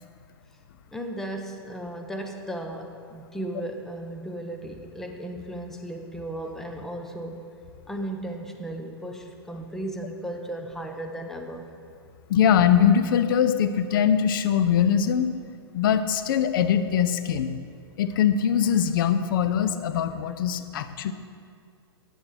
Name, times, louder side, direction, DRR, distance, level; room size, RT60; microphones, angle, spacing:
voice 1, 0.9-7.5 7.9-11.7, right 1 dB, 5° left, 3 dB, 1.1 m, -35 dB
voice 2, 12.3-15.3 15.7-17.5 18.0-21.1, left 8 dB, 55° left, 11 dB, 0.9 m, -22 dB
13.5 x 9.3 x 5.0 m, 2.3 s
hypercardioid pair, 115°, 14 cm